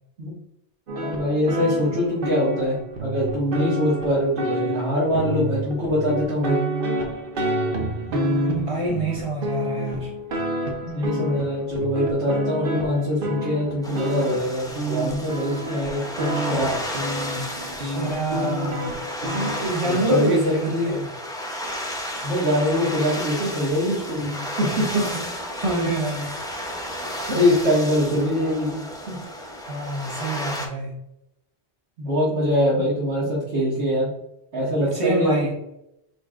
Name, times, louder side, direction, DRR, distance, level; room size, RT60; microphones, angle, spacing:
sound 1, 0.9-19.6, right 1 dB, 55° right, 1.0 m, -28 dB
voice 1, 1.0-6.6 10.8-16.8 19.8-21.0 22.2-24.9 27.3-29.2 32.0-34.1 34.5-35.5, left 1 dB, 85° right, -8 dB, 1.8 m, -23 dB
voice 2, 8.1-10.1 17.8-19.0 19.3-21.1 24.9-25.2 25.6-26.4 29.7-30.9 34.9-35.5, right 2 dB, 30° right, -1 dB, 1.2 m, -26 dB
sound 2, 13.8-30.7, equal, 5° left, 0.5 m, -33 dB
4.6 x 4.2 x 2.4 m, 0.82 s
omnidirectional pair, 1.1 m